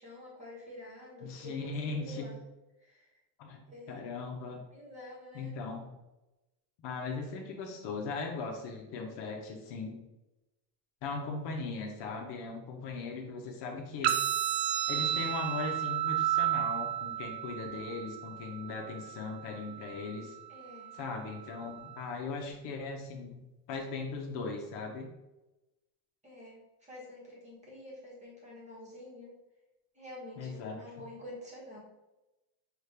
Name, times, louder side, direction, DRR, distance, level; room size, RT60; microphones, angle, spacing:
voice 1, 0.0-2.4 2.8-3.1 3.7-4.0 4.7-5.6 20.5-20.9 26.2-29.4 29.9-31.8, left 1 dB, 15° right, -4 dB, 1.1 m, -48 dB
voice 2, 1.2-2.3 3.4-4.6 5.3-5.9 6.8-10.0 11.0-14.1 14.9-20.4 20.9-25.1 30.4-31.0, left 4 dB, 60° left, 2 dB, 0.9 m, -39 dB
sound 1, 14.0-22.0, right 11 dB, 90° right, 0.6 m, -33 dB
6.2 x 2.5 x 3.3 m, 1.0 s
cardioid pair, 165°, 48 cm